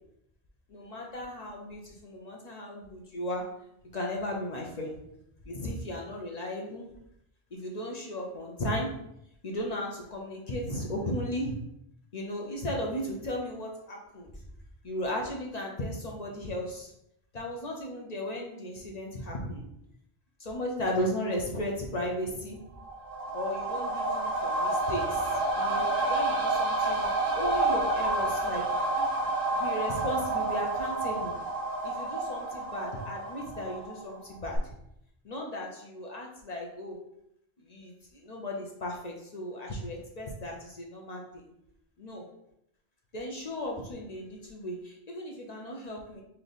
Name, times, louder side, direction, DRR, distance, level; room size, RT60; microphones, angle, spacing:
voice 1, 0.7-3.4 3.9-4.9 5.4-6.9 7.5-9.0 9.4-11.6 12.1-14.3 14.8-16.9 17.3-19.6 20.4-22.6 23.3-28.6 29.6-31.3 31.8-34.7 35.2-37.0 37.6-41.5 42.0-42.2 43.1-46.2, left 1 dB, 45° left, -1 dB, 0.6 m, -35 dB
sound 1, 22.8-34.2 34.5-34.6, right 2 dB, 55° right, 0.9 m, -29 dB
3.3 x 2.9 x 3.9 m, 0.79 s
omnidirectional pair, 1.2 m